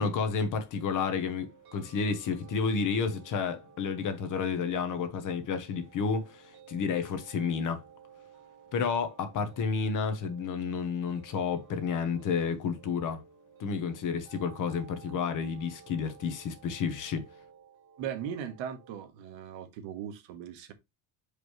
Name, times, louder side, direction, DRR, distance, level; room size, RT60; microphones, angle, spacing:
voice 1, 0.0-7.8 8.7-13.2 13.6-17.2, left 5 dB, 45° left, 1.1 m, -31 dB
sound 1, 0.7-19.1, right 7 dB, 50° right, 2.8 m, -55 dB
voice 2, 18.0-20.7, right 8 dB, 75° right, 1.3 m, -38 dB
6.1 x 5.1 x 3.1 m
cardioid pair, 165°, 45 cm